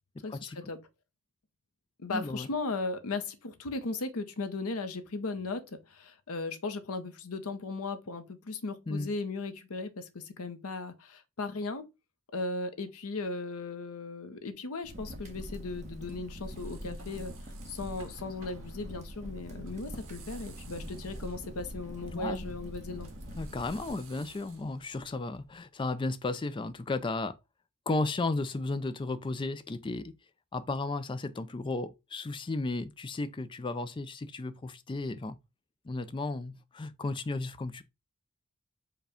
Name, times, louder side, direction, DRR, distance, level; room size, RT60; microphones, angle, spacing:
voice 1, 0.2-0.8 2.0-11.8 12.3-17.3 17.6-23.1, left 3 dB, 75° left, 0.8 m, -37 dB
voice 2, 2.1-2.5 8.9-9.1 22.1-22.5 23.4-27.4 27.9-30.1 30.5-35.4 35.8-37.8, left 2 dB, 20° left, 0.3 m, -34 dB
Crackle, 14.8-23.9, equal, 30° right, 1.1 m, -43 dB
sound 1, 15.4-25.6, right 4 dB, 70° right, 1.2 m, -56 dB
4.8 x 2.2 x 4.9 m
head